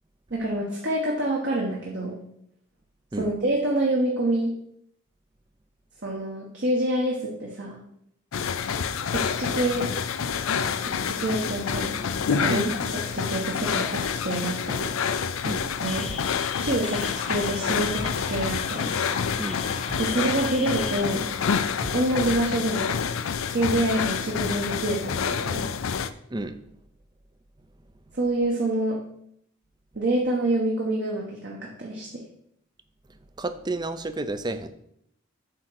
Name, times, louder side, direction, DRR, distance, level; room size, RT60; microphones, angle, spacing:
voice 1, 0.3-2.2 3.2-4.5 6.0-7.8 9.1-9.9 10.8-12.0 12.3-12.7 13.1-14.9 15.6-16.1 16.6-19.0 20.0-21.3 21.9-23.0 23.5-25.7 28.1-29.0 29.9-32.2, right 1 dB, 55° right, -2 dB, 1.2 m, -27 dB
sound 1, 8.3-26.1, left 6 dB, 75° left, 0.5 m, -28 dB
sound 2, 15.9-21.0, left 6 dB, 30° left, 0.6 m, -38 dB
sound 3, 16.1-16.2 16.8-17.1 18.0-18.5 18.9-19.1 19.7-20.0 20.9-21.0 21.8-22.0 22.3-22.4 22.8-22.9 23.5-23.6, equal, 5° left, 0.9 m, -37 dB
voice 2, 33.1-34.7, right 2 dB, 20° right, 11 dB, 0.4 m, -31 dB
8.1 x 3.8 x 6.3 m, 0.72 s
head